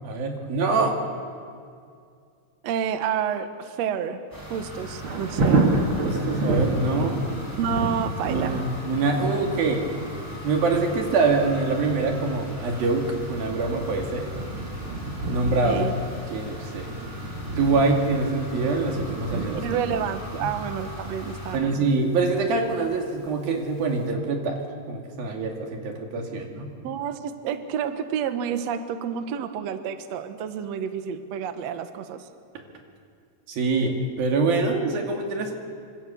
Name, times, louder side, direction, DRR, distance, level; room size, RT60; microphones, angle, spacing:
voice 1, 0.0-0.9 6.0-7.2 8.3-9.9 10.4-13.0 13.3-14.3 15.3-15.9 16.3-17.0 17.6-19.6 20.3-20.5 21.5-24.6 24.9-26.7 33.5-35.5, right 3 dB, 90° right, 2 dB, 4.3 m, -24 dB
voice 2, 2.6-4.2 4.5-5.6 7.6-8.6 15.6-16.0 19.6-21.9 26.8-32.3, right 8 dB, 60° right, 9 dB, 1.9 m, -29 dB
sound 1, 4.3-21.6, left 1 dB, 5° right, 4.0 m, -39 dB
Thunder, 4.7-23.5 24.0-24.1, right 3 dB, 40° right, 2.6 m, -30 dB
25.5 x 24.5 x 7.0 m, 2.3 s
omnidirectional pair, 4.0 m